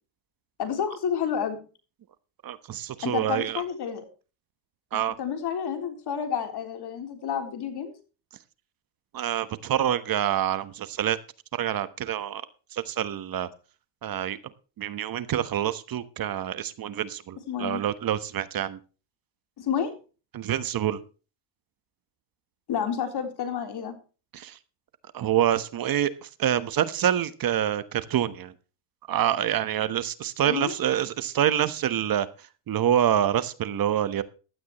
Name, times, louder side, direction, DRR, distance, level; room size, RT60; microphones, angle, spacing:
voice 1, 0.6-1.6 3.0-4.1 4.9-7.9 17.5-17.8 19.6-19.9 22.7-23.9 30.4-30.8, left 7 dB, 55° left, 6 dB, 3.8 m, -30 dB
voice 2, 2.4-3.6 4.9-5.2 9.1-11.2 11.5-12.4 12.7-13.5 14.0-14.4 14.8-18.8 20.3-21.0 24.3-24.5 25.1-28.5 29.1-32.3 32.7-34.2, right 10 dB, 45° right, 13 dB, 1.3 m, -26 dB
15.5 x 12.5 x 3.1 m, 0.35 s
cardioid pair, 120°, 48 cm